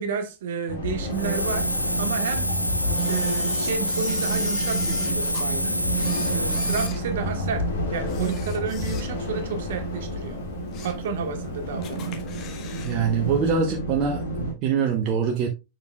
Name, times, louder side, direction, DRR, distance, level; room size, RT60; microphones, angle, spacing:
voice 1, 0.0-1.7 2.0-2.5 3.1-5.8 6.3-10.4 10.8-12.2, right 5 dB, 55° right, 1.5 m, -31 dB
sound 1, 0.7-14.5, right 1 dB, 65° left, 2.2 m, -30 dB
Hiss, 1.1-6.9, equal, 90° left, 0.4 m, -27 dB
Camera, 3.0-5.5 5.9-7.6 8.0-9.4 9.8-9.9 10.4-11.1 11.4-11.5 11.8-13.0 13.2-13.3, left 8 dB, 35° left, 1.2 m, -41 dB
voice 2, 12.8-15.5, right 6 dB, 40° right, 0.9 m, -24 dB
6.9 x 6.2 x 2.3 m
figure-of-eight pair, 90°, 0 cm